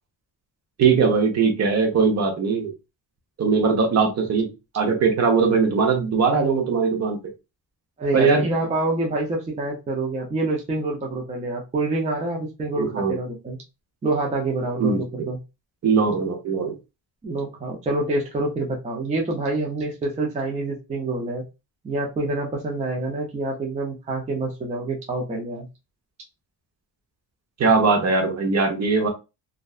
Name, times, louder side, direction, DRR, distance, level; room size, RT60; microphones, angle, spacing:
voice 1, 0.8-2.7 3.4-4.5 4.7-7.2 8.1-8.5 12.8-13.2 14.8-15.0 15.8-16.7 27.6-29.1, right 5 dB, 45° right, 2 dB, 0.8 m, -20 dB
voice 2, 8.0-13.6 14.0-15.4 17.2-21.4 21.8-25.7, right 2 dB, 20° right, -1 dB, 0.4 m, -27 dB
2.5 x 2.1 x 2.3 m, 0.26 s
cardioid pair, 130°, 38 cm